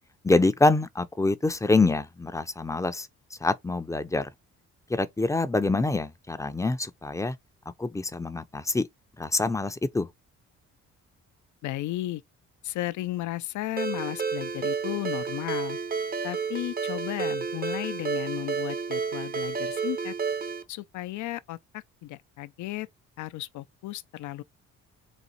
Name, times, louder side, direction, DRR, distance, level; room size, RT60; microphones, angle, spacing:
voice 1, 0.2-3.1 3.4-4.3 4.9-7.4 7.8-8.8 9.2-10.1, left 2 dB, 10° left, 0.5 m, -25 dB
voice 2, 11.6-12.2 12.6-15.8 16.2-20.1 20.7-22.9 23.2-24.4, left 16 dB, 75° left, 0.5 m, -34 dB
Ringtone, 13.8-20.6, right 5 dB, 30° right, 0.6 m, -31 dB
4.0 x 2.5 x 4.1 m
cardioid pair, 90°, 30 cm